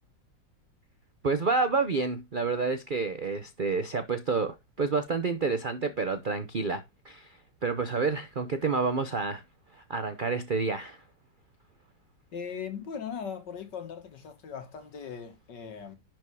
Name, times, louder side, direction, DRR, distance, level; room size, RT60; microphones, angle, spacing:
voice 1, 1.2-9.4 9.7-11.0, right 4 dB, 60° right, 0.5 m, -29 dB
voice 2, 12.3-16.0, left 7 dB, 65° left, 2.2 m, -39 dB
11.0 x 4.6 x 4.7 m
omnidirectional pair, 2.0 m